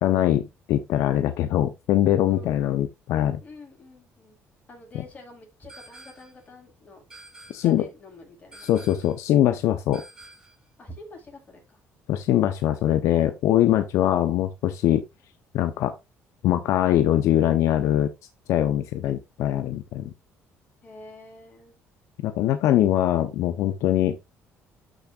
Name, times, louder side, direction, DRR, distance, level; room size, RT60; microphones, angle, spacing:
voice 1, 0.0-3.4 7.5-7.9 8.6-10.0 12.1-15.0 15.5-16.0 16.4-18.1 18.5-20.1 22.2-24.2, left 12 dB, 80° left, 0.9 m, -22 dB
voice 2, 2.2-2.8 3.4-4.4 4.7-7.0 7.5-8.7 10.8-11.8 20.8-21.7, left 2 dB, 30° left, 5.7 m, -47 dB
sound 1, 5.7-6.4 7.1-7.8 8.5-9.2 9.9-10.7, right 2 dB, 10° right, 4.4 m, -48 dB
12.0 x 6.7 x 2.5 m
cardioid pair, 120°, 5 cm